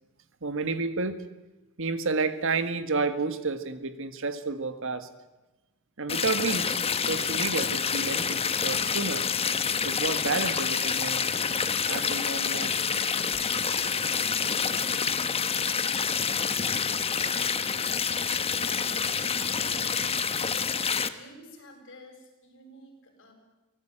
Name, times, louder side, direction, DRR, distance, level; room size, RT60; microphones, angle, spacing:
voice 1, 0.4-1.2 1.8-5.1 6.0-9.3 9.8-11.3 11.9-12.8, right 4 dB, 65° right, 10 dB, 1.7 m, -30 dB
sound 1, 6.1-21.1, left 6 dB, 25° left, 1.1 m, -28 dB
voice 2, 18.4-20.4 20.9-23.3, equal, 60° left, 3 dB, 7.4 m, -50 dB
24.5 x 18.0 x 8.9 m, 1.1 s
head